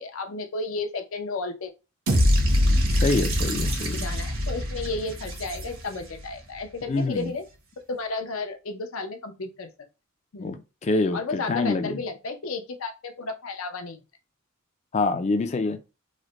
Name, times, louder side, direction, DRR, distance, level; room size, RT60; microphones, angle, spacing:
voice 1, 0.0-1.7 3.9-7.4 7.9-9.7 10.3-10.6 11.1-14.0, left 3 dB, 75° left, 0.6 m, -33 dB
sound 1, 2.1-6.2, equal, 75° right, 0.9 m, -24 dB
voice 2, 3.0-4.1 6.9-7.3 10.4-12.0 14.9-15.8, left 3 dB, 30° left, 0.3 m, -26 dB
3.1 x 2.1 x 3.7 m
head